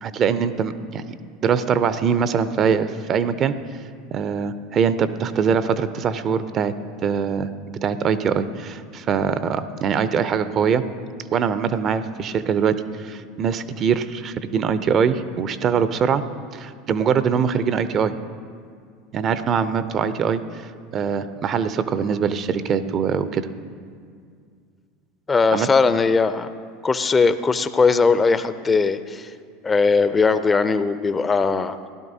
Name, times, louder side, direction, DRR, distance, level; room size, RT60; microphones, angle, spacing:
voice 1, 0.0-1.1 1.4-3.5 4.1-6.7 7.0-7.5 7.8-10.8 11.3-16.2 16.5-18.1 19.1-20.4 20.9-23.5 25.5-25.7, right 7 dB, 40° right, 13 dB, 0.6 m, -22 dB
voice 2, 25.3-26.5 26.8-29.3 29.6-31.8, left 4 dB, 25° left, 12 dB, 0.5 m, -19 dB
16.5 x 12.0 x 2.8 m, 2.1 s
hypercardioid pair, 80°, 0 cm